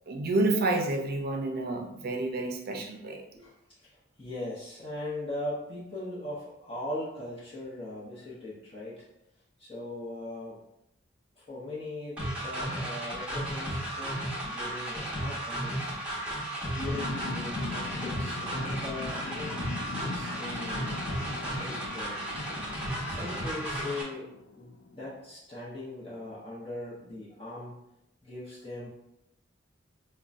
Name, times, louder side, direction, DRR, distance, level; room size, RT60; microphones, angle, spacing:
voice 1, 0.1-3.2, right 2 dB, 50° right, 4 dB, 0.5 m, -29 dB
voice 2, 3.3-9.1 9.6-10.6 11.4-14.2 14.4-16.0 16.7-19.6 19.9-21.1 21.4-22.2 23.0-24.3 24.6-27.8 28.2-28.9, left 1 dB, 30° left, -10 dB, 0.8 m, -40 dB
sound 1, 12.2-24.0, right 1 dB, 5° right, 1.0 m, -34 dB
sound 2, 16.7-24.9, left 4 dB, 75° left, 0.4 m, -41 dB
5.2 x 2.2 x 2.4 m, 0.85 s
head